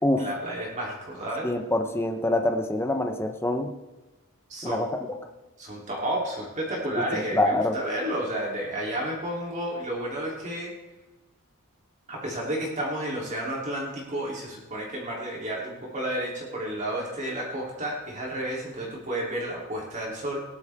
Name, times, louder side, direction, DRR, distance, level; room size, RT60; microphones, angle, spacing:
voice 1, 0.2-1.5 4.5-5.2 5.6-10.7 12.1-20.4, right 1 dB, 35° right, -3 dB, 3.3 m, -31 dB
voice 2, 1.4-3.7 4.6-4.9 7.1-7.8, left 1 dB, 10° left, 5 dB, 0.9 m, -25 dB
19.0 x 11.5 x 3.6 m, 1.1 s
head